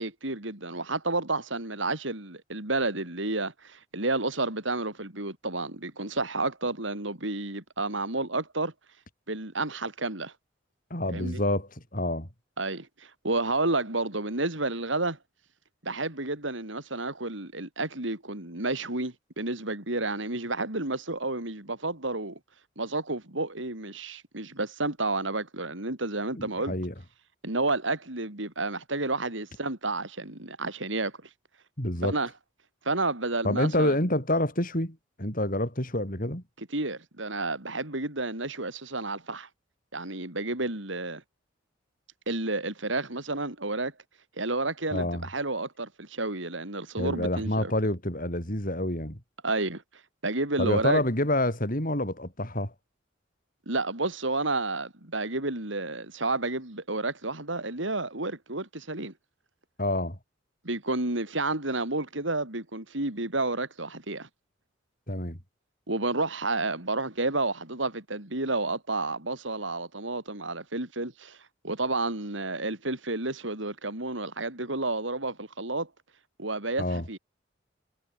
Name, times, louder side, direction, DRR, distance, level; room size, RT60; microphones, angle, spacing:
voice 1, 0.0-8.7 9.3-10.3 11.1-11.4 12.6-15.2 15.8-22.4 22.8-26.7 27.4-31.1 32.0-32.3 32.8-33.9 36.6-39.5 39.9-41.2 42.3-43.9 44.4-47.7 49.4-49.8 50.2-51.0 53.7-59.1 60.6-64.3 65.9-71.4 71.6-75.9 76.4-77.2, right 2 dB, 70° right, 4.2 m, -31 dB
voice 2, 10.9-12.3 26.4-26.9 31.8-32.1 33.4-36.4 44.9-45.3 47.0-49.2 50.6-52.7 59.8-60.2 65.1-65.4 76.8-77.0, left 1 dB, 45° left, 7.4 m, -28 dB
head